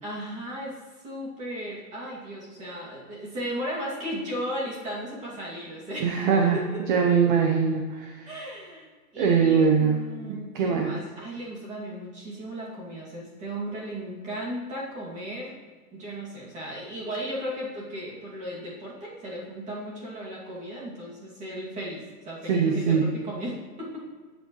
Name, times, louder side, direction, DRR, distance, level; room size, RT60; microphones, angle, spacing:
voice 1, 0.0-6.2 6.5-7.2 8.2-8.9 9.1-15.5 15.9-24.0, equal, 15° right, -5 dB, 2.4 m, -36 dB
voice 2, 6.0-6.6 6.9-8.2 9.2-10.0 10.2-10.9 22.5-23.0, right 6 dB, 30° right, 2 dB, 0.8 m, -22 dB
19.0 x 8.1 x 3.2 m, 1.4 s
supercardioid pair, 170°, 48 cm